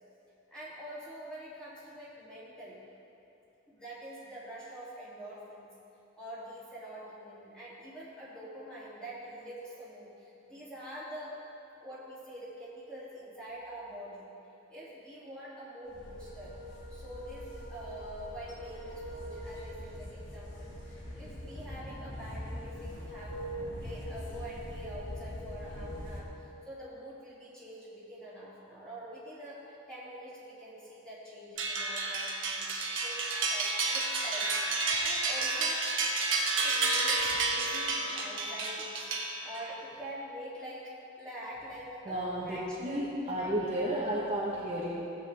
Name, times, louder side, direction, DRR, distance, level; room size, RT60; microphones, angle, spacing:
voice 1, 0.5-2.8 3.7-5.7 6.2-11.4 11.8-14.3 14.7-16.5 16.9-34.5 35.0-35.8 36.6-39.0 39.4-43.1 43.4-44.3, right 1 dB, 5° left, -10 dB, 2.9 m, -45 dB
sound 1, 15.8-26.2, equal, 70° left, 1.7 m, -42 dB
sound 2, 31.6-39.7, right 3 dB, 75° right, 1.2 m, -31 dB
voice 2, 42.0-44.9, right 1 dB, 30° right, -6 dB, 1.2 m, -32 dB
15.5 x 8.4 x 3.5 m, 2.8 s
head